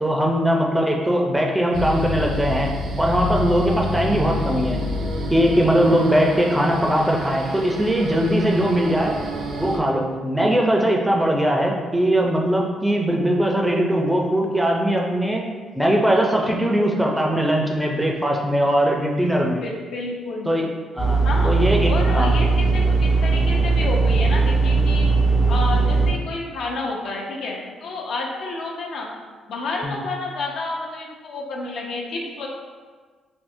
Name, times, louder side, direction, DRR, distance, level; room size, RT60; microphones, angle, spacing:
voice 1, 0.0-2.7 3.0-4.8 5.3-9.2 9.6-15.4 15.8-19.6 20.5-20.7 20.9-22.4 29.8-30.1, equal, 5° right, 0 dB, 0.4 m, -20 dB
sound 1, 1.7-9.8, left 1 dB, 70° right, 0.4 m, -28 dB
voice 2, 4.3-4.6 6.9-7.0 19.6-20.5 21.2-21.5 21.9-25.1 25.5-29.1 29.5-32.5, left 3 dB, 70° left, -1 dB, 0.5 m, -30 dB
sound 2, 21.0-26.1, right 3 dB, 55° left, 1.2 m, -18 dB
3.5 x 2.6 x 2.6 m, 1.5 s
cardioid pair, 90°, 0 cm